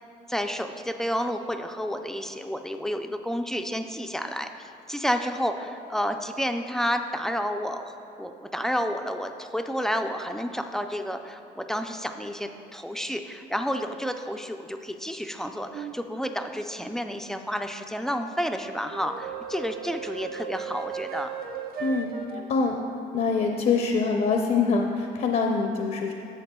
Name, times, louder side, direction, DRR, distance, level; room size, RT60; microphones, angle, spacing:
voice 1, 0.3-21.3, equal, 5° left, 6 dB, 0.4 m, -30 dB
sound 1, 15.7-16.0 18.9-22.5, right 7 dB, 60° right, 0.7 m, -36 dB
voice 2, 21.8-22.8 23.1-26.1, left 4 dB, 50° left, 2 dB, 0.6 m, -25 dB
11.5 x 7.2 x 2.3 m, 2.8 s
cardioid pair, 110°, 17 cm